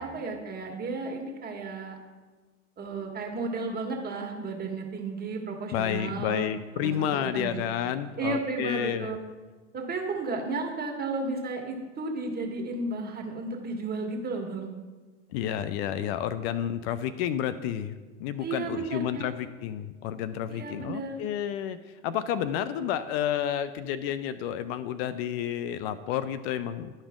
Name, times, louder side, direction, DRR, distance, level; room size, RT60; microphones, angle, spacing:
voice 1, 0.0-2.0 2.8-6.5 6.7-7.6 8.2-9.2 9.7-14.7 18.4-19.3 20.5-21.2, right 3 dB, 25° right, 1 dB, 1.6 m, -33 dB
voice 2, 5.7-9.2 15.3-21.8 22.0-26.9, left 10 dB, 60° left, 13 dB, 0.5 m, -30 dB
11.5 x 5.2 x 3.7 m, 1.3 s
hypercardioid pair, 95°, 35 cm